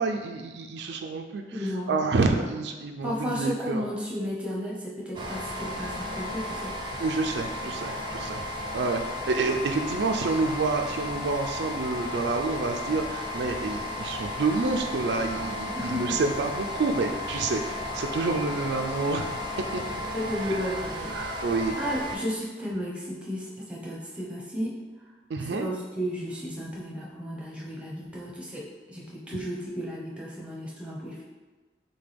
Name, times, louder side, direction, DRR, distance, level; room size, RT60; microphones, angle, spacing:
voice 1, 0.0-1.4 1.9-3.9 7.0-8.4 8.7-19.8 21.1-21.7 25.3-25.7, right 3 dB, 80° right, 4 dB, 0.4 m, -28 dB
voice 2, 1.5-2.5 3.0-6.7 15.7-16.2 20.1-21.5 21.8-24.8 25.5-31.2, equal, 5° right, -5 dB, 0.8 m, -33 dB
sound 1, 5.1-22.2, left 2 dB, 25° right, 0.5 m, -34 dB
6.6 x 2.2 x 3.4 m, 1.3 s
head